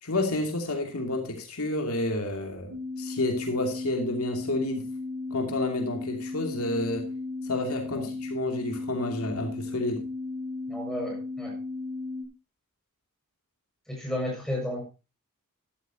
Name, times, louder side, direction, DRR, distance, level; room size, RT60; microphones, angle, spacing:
voice 1, 0.0-4.8 5.3-7.1 7.4-10.0, left 2 dB, 70° left, 2.9 m, -30 dB
sound 1, 2.7-12.2, left 3 dB, 70° right, 5.6 m, -35 dB
voice 2, 10.7-11.6 13.9-14.8, left 1 dB, ahead, 7.0 m, -33 dB
13.5 x 13.5 x 2.9 m
head